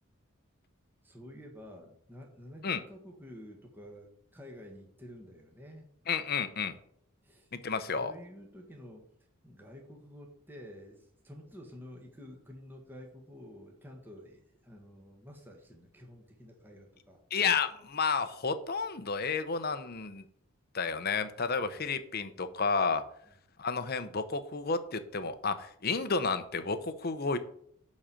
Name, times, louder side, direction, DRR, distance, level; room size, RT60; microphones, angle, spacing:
voice 1, 1.0-5.9 7.2-7.5 7.8-9.1 9.4-17.2 21.7-21.8, equal, 10° right, 1 dB, 1.4 m, -50 dB
voice 2, 6.1-6.8 7.6-8.1 17.3-20.2 20.7-23.0 23.6-27.4, left 5 dB, 45° left, 11 dB, 0.8 m, -31 dB
10.0 x 4.2 x 7.5 m, 0.67 s
head